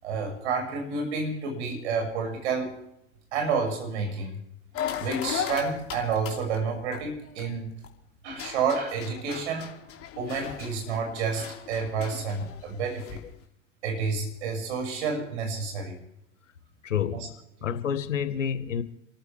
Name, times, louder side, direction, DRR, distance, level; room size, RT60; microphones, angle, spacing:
voice 1, 0.0-2.8 3.3-4.4 4.9-7.7 8.2-9.7 10.2-13.2 13.8-15.9 17.1-17.3, right 5 dB, 65° right, 6.3 m, -30 dB
sound 1, 4.7-7.9 8.3-13.3, left 9 dB, 35° left, 2.8 m, -37 dB
voice 2, 16.8-17.3 17.6-18.8, left 8 dB, 75° left, 1.6 m, -28 dB
28.5 x 14.5 x 3.4 m
figure-of-eight pair, 85°, 37 cm